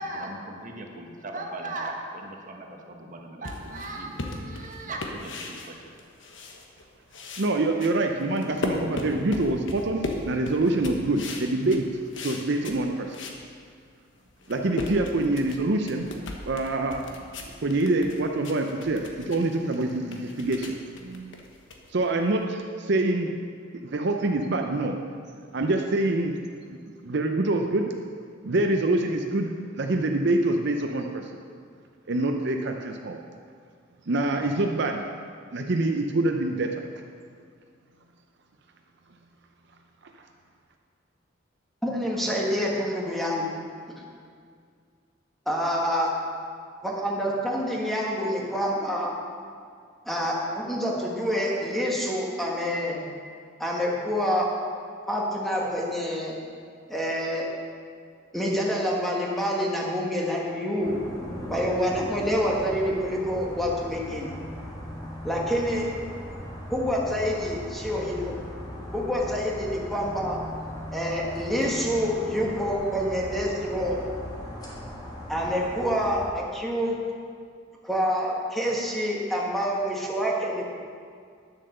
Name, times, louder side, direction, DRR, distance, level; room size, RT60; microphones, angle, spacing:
voice 1, 0.0-5.8, right 2 dB, 40° right, 2 dB, 1.1 m, -37 dB
sound 1, 3.4-6.8 7.1-13.4 13.9-14.0 14.3-22.4, left 2 dB, 65° left, 1.2 m, -37 dB
voice 2, 7.4-11.9 12.2-13.1 14.5-16.1 16.5-17.0 17.6-21.4 21.9-23.3 23.8-24.9 25.5-26.3 26.7-27.9 28.4-29.5 29.8-31.3 32.1-33.2 34.1-35.0 35.5-36.8, right 2 dB, 60° right, 3 dB, 0.6 m, -25 dB
voice 3, 41.8-43.4 45.4-46.1 46.8-49.1 50.0-53.0 53.6-54.5 55.1-56.3 56.9-57.5 58.3-61.0 61.5-64.3 65.2-65.9 66.7-68.3 68.9-70.4 70.9-74.0 75.3-77.0 77.8-80.6, equal, ahead, -3 dB, 1.5 m, -27 dB
sound 2, 60.8-76.3, equal, 20° left, 1.8 m, -39 dB
10.0 x 7.5 x 6.6 m, 2.1 s
head